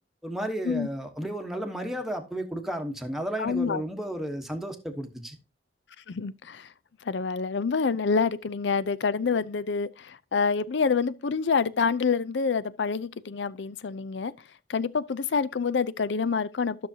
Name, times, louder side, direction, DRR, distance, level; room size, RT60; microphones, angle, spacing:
voice 1, 0.2-5.4, right 1 dB, ahead, 1.1 m, -33 dB
voice 2, 3.4-3.8 6.1-6.7 7.0-14.3 14.7-16.9, left 5 dB, 70° left, 0.5 m, -27 dB
12.5 x 6.4 x 2.8 m
head